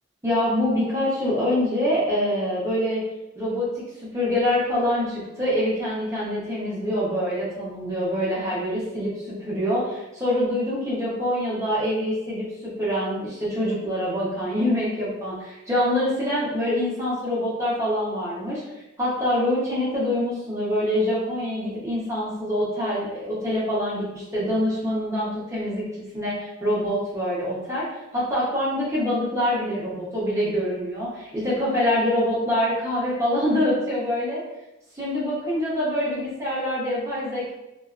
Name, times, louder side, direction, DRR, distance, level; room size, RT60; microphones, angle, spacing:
voice 1, 0.2-3.0 3.3-3.7 4.0-9.1 9.4-12.4 12.8-18.6 19.0-25.8 26.1-27.8 28.1-34.4 35.0-37.5, left 1 dB, 15° right, -8 dB, 0.8 m, -25 dB
2.6 x 2.3 x 2.4 m, 0.96 s
head